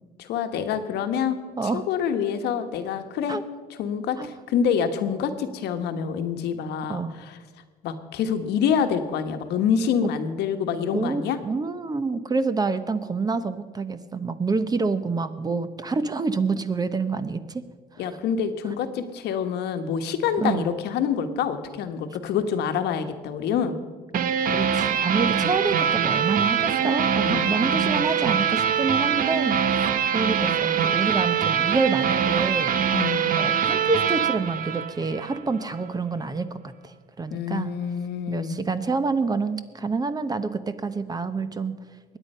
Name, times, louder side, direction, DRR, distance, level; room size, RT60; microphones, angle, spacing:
voice 1, 0.2-3.4 3.8-7.4 7.8-11.4 18.0-23.8 27.2-27.9 32.9-33.3 37.3-38.6, left 7 dB, 80° left, 7 dB, 1.3 m, -26 dB
voice 2, 10.9-17.6 17.9-18.1 20.4-20.6 24.1-29.6 30.1-32.7 33.4-37.7 38.3-41.7, right 4 dB, 25° right, 12 dB, 0.8 m, -27 dB
sound 1, 24.1-35.4, right 8 dB, 55° right, 0.9 m, -23 dB
21.5 x 9.1 x 5.5 m, 1.4 s
cardioid pair, 110°, 17 cm